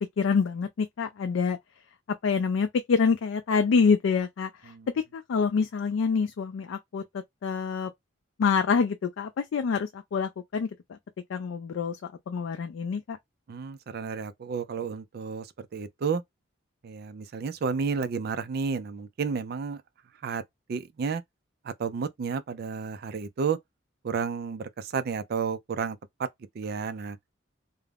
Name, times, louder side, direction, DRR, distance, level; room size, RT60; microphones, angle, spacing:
voice 1, 0.2-1.6 2.2-7.9 8.4-11.0 11.3-12.0 12.3-13.2, left 5 dB, 85° left, 0.4 m, -26 dB
voice 2, 13.5-16.2 16.8-19.8 20.2-20.4 20.7-21.2 21.6-23.6 24.0-26.3 26.5-27.2, right 5 dB, 50° right, 0.3 m, -31 dB
2.4 x 2.0 x 3.2 m
head